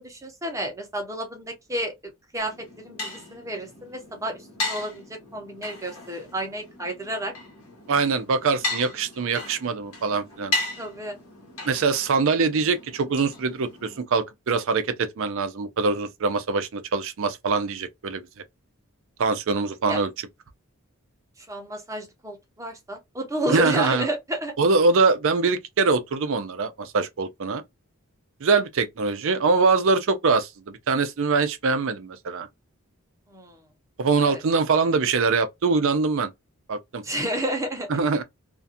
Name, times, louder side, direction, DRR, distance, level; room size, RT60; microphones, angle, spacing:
voice 1, 0.0-1.9 2.3-7.3 10.8-11.1 19.9-20.0 21.4-24.5 33.3-33.6 34.2-34.4 37.0-37.9, right 1 dB, 15° right, 0.7 m, -31 dB
sound 1, 2.4-14.0, left 2 dB, 70° left, 1.1 m, -36 dB
voice 2, 7.9-10.5 11.7-18.2 19.2-20.1 23.5-24.1 24.6-27.6 28.4-32.5 34.0-36.3 36.7-37.0 37.9-38.2, right 4 dB, 60° right, 0.5 m, -23 dB
2.5 x 2.3 x 2.6 m
head